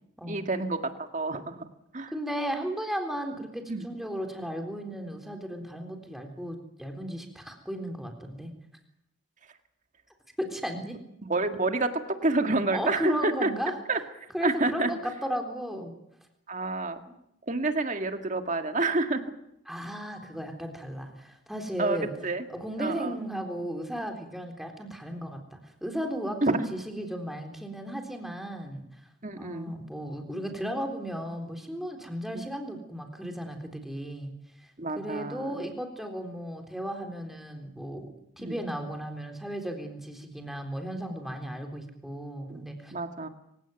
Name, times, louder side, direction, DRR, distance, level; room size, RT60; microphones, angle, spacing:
voice 1, 0.3-1.7 1.9-2.1 3.7-3.8 11.3-13.5 13.9-14.0 14.4-14.9 16.5-17.0 17.5-19.2 21.8-22.5 22.8-23.2 26.4-26.7 29.2-29.7 32.3-32.4 34.8-35.6 38.4-38.6 42.5-42.6 42.9-43.3, right 2 dB, 40° right, 7 dB, 2.0 m, -28 dB
voice 2, 2.1-8.5 10.4-11.0 12.7-13.7 14.3-15.9 17.1-17.2 19.7-22.1 22.5-28.8 29.4-43.0, equal, ahead, 3 dB, 3.7 m, -35 dB
25.5 x 17.0 x 9.3 m, 0.79 s
head